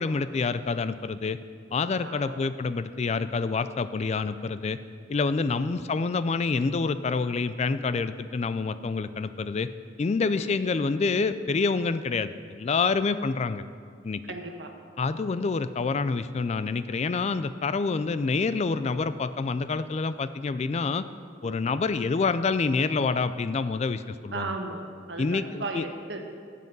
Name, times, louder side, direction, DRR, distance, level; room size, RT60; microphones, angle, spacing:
voice 1, 0.0-1.4 1.7-4.8 5.1-9.7 10.0-13.6 14.0-14.2 15.0-21.0 21.4-24.5 25.2-25.8, left 4 dB, 35° left, 13 dB, 0.3 m, -27 dB
voice 2, 2.0-2.5 5.4-5.8 10.4-10.5 14.2-14.7 21.4-21.6 24.3-26.2, right 3 dB, 70° right, 4 dB, 1.3 m, -36 dB
13.5 x 7.5 x 5.4 m, 2.1 s
head